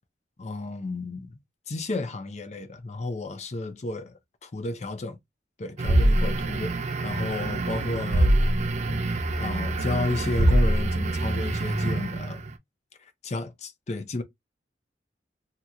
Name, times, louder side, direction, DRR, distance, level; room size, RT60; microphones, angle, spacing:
voice 1, 0.4-1.4 1.7-5.2 5.6-8.4 8.9-12.4 13.0-14.2, left 2 dB, 40° left, 0.5 m, -32 dB
sound 1, 5.8-12.5, right 1 dB, 40° right, 0.4 m, -24 dB
2.9 x 2.0 x 3.5 m
head